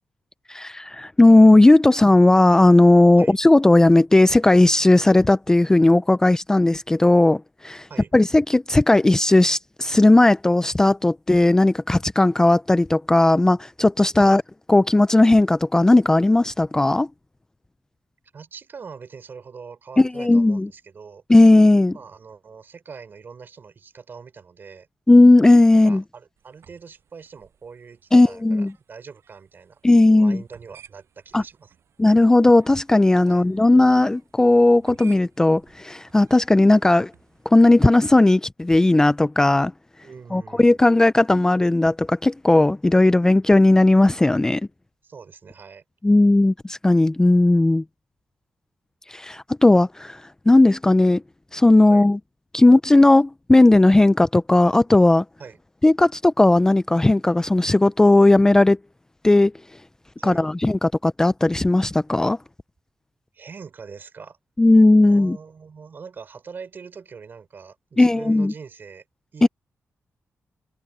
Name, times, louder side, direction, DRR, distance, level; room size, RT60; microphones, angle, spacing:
voice 1, 0.5-14.4 14.7-17.1 20.0-20.7 21.3-22.0 25.1-26.0 28.1-28.7 29.8-30.4 31.3-31.4 32.0-37.1 37.5-39.7 40.3-44.6 46.0-47.8 49.1-51.2 51.5-52.2 52.5-55.2 55.8-58.8 59.2-59.5 60.2-62.4 64.6-65.4 68.0-68.5 69.4-69.5, left 2 dB, 10° left, 0.4 m, -16 dB
voice 2, 18.3-21.2 21.9-24.9 25.8-29.8 30.2-31.7 33.3-33.4 40.0-40.8 45.0-45.8 51.9-52.1 55.4-55.6 60.2-60.5 63.3-64.4 65.0-69.0 69.3-69.5, right 5 dB, 45° right, 4.2 m, -42 dB
sound 1, 26.4-37.7, right 8 dB, 75° right, 7.7 m, -55 dB
wide cardioid pair, 140°, 5 cm